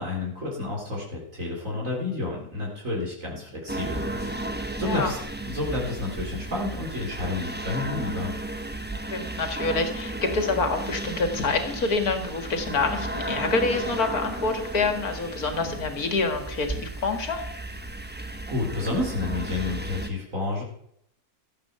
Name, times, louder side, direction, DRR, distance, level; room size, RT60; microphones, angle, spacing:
voice 1, 0.0-4.4 4.8-5.2 5.4-8.3 18.5-20.6, left 2 dB, 60° right, -3 dB, 4.1 m, -30 dB
sound 1, 3.7-20.1, right 1 dB, 10° right, 0.9 m, -34 dB
voice 2, 9.1-17.4, left 3 dB, 85° left, 6 dB, 2.4 m, -27 dB
15.0 x 8.5 x 6.8 m, 0.71 s
omnidirectional pair, 1.5 m